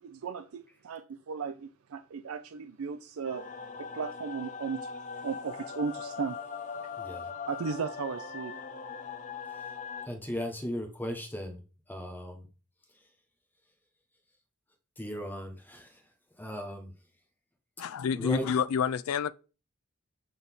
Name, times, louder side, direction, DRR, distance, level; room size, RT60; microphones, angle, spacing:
voice 1, 0.0-3.5 3.8-6.4 7.5-8.5, right 5 dB, 90° right, 0.4 m, -36 dB
sound 1, 3.2-10.1, left 5 dB, 40° left, 0.6 m, -40 dB
voice 2, 7.0-7.3 10.0-11.6 11.9-12.5 15.0-16.0 16.4-16.9 18.1-18.5, equal, 10° left, 1.1 m, -37 dB
voice 3, 17.8-19.3, left 7 dB, 90° left, 0.4 m, -28 dB
7.9 x 4.0 x 3.6 m
head